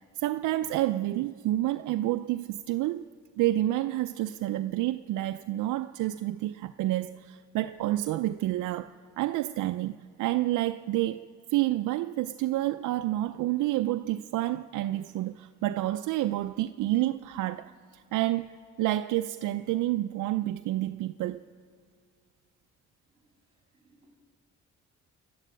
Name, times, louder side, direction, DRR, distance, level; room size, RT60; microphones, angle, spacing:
voice 1, 0.0-3.1 3.4-11.2 11.5-21.4, right 15 dB, 80° right, 0.5 m, -29 dB
voice 2, 23.1-24.1, right 2 dB, 20° right, 3.8 m, -66 dB
26.0 x 12.0 x 9.1 m
cardioid pair, 90°, 30 cm